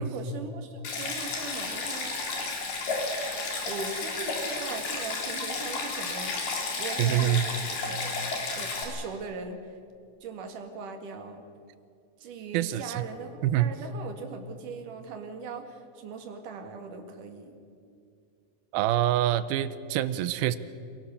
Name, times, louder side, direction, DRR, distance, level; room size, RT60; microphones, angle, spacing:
voice 1, 0.0-2.1 3.6-7.3 7.9-8.1 8.6-9.6 10.2-11.4 12.2-17.6, right 4 dB, 60° right, 4 dB, 3.3 m, -39 dB
Stream, 0.8-8.8, left 3 dB, 90° left, 5.1 m, -32 dB
voice 2, 7.0-7.4 12.5-13.0 13.4-13.7 18.7-20.6, right 12 dB, 80° right, 14 dB, 2.6 m, -25 dB
27.5 x 17.5 x 6.9 m, 2.4 s
omnidirectional pair, 4.3 m